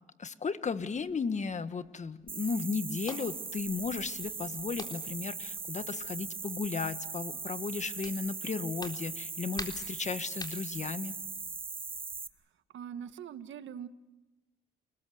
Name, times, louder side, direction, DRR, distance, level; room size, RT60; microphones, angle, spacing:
voice 1, 0.2-11.1, left 5 dB, 35° left, 11 dB, 1.6 m, -35 dB
sound 1, 0.9-12.2, left 2 dB, 20° left, 3.8 m, -51 dB
sound 2, 2.3-12.3, right 4 dB, 25° right, 1.4 m, -40 dB
voice 2, 12.7-13.9, right 8 dB, 70° right, 11 dB, 1.6 m, -42 dB
29.0 x 20.0 x 7.9 m, 1.1 s
cardioid pair, 90°, 20 cm